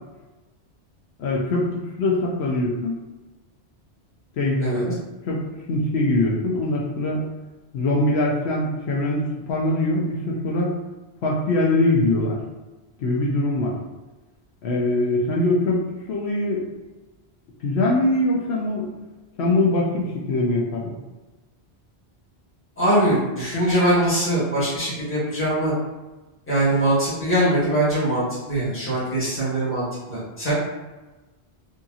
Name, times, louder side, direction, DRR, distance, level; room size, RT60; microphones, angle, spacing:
voice 1, 1.2-3.0 4.4-5.4 5.7-7.2 7.7-10.7 11.2-12.4 13.0-13.7 14.6-16.6 17.6-18.9 19.4-21.0, left 2 dB, 75° left, -3 dB, 0.8 m, -22 dB
voice 2, 22.8-25.7 26.5-30.5, right 1 dB, 10° left, -9 dB, 1.1 m, -22 dB
2.7 x 2.6 x 2.4 m, 1.1 s
omnidirectional pair, 1.1 m